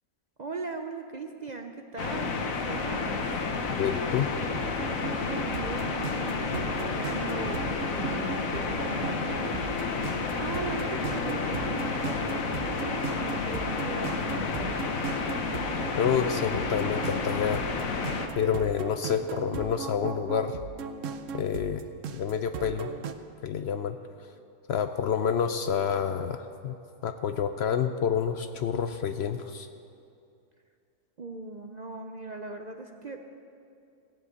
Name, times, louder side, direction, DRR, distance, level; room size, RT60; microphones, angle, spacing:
voice 1, 0.4-3.3 4.7-14.8 31.2-33.2, right 3 dB, 45° right, 4 dB, 0.6 m, -39 dB
sound 1, 2.0-18.3, left 4 dB, 80° left, 1.5 m, -31 dB
voice 2, 3.8-4.3 15.9-17.6 18.4-20.6 21.3-21.9 22.1-22.9 23.4-24.0 24.7-26.8 27.0-29.7, left 7 dB, 65° left, 8 dB, 0.7 m, -28 dB
sound 2, 4.4-23.1, right 6 dB, 70° right, 1.0 m, -38 dB
16.0 x 7.6 x 8.1 m, 2.5 s
omnidirectional pair, 1.4 m